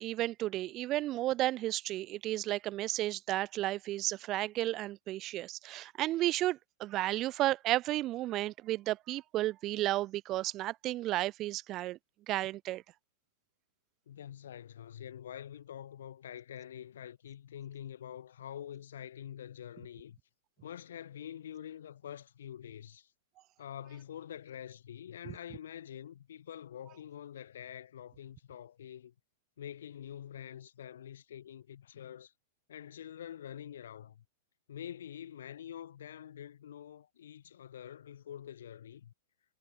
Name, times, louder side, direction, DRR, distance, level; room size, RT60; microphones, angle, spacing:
voice 1, 0.0-12.0 12.3-12.8, right 16 dB, 35° right, 1.2 m, -33 dB
voice 2, 14.1-20.2 20.6-23.1 23.6-29.1 29.6-32.3 32.7-34.2 34.7-39.1, left 10 dB, 70° left, 1.9 m, -46 dB
hypercardioid pair, 110°, 0 cm